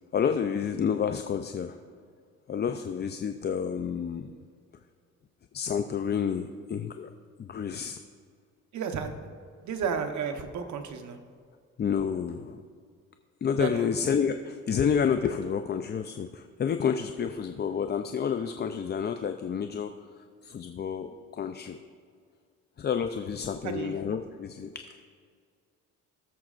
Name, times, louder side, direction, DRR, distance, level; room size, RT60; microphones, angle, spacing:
voice 1, 0.1-1.7 2.5-4.3 5.5-7.1 7.4-8.0 11.8-12.6 13.4-19.9 20.4-21.8 22.8-24.8, left 7 dB, 35° left, 8 dB, 0.4 m, -29 dB
voice 2, 8.7-9.3 9.6-11.2 13.6-13.9 23.6-24.0, right 6 dB, 70° right, 6 dB, 1.0 m, -32 dB
18.5 x 7.1 x 2.5 m, 2.1 s
cardioid pair, 90°, 30 cm